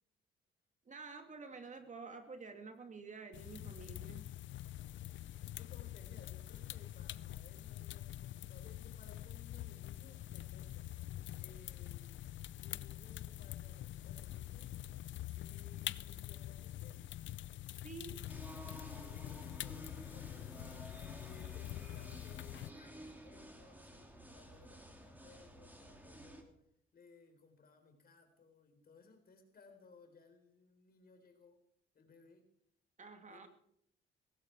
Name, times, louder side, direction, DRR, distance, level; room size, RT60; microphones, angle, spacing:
voice 1, 0.9-4.2 17.8-18.1 33.0-33.5, right 4 dB, 40° right, 6 dB, 2.3 m, -49 dB
sound 1, 3.3-22.7, left 14 dB, 70° left, 0.6 m, -46 dB
voice 2, 4.7-5.1 5.5-11.0 11.4-12.2 12.6-14.8 15.2-17.3 18.1-18.3 19.0-20.8 21.2-26.6 26.9-31.6 31.9-32.5 33.3-33.5, left 4 dB, 50° left, 6 dB, 4.1 m, -62 dB
sound 2, 18.3-26.4, right 1 dB, 10° right, 3.4 m, -53 dB
17.5 x 16.0 x 4.7 m, 0.68 s
cardioid pair, 90°, 20 cm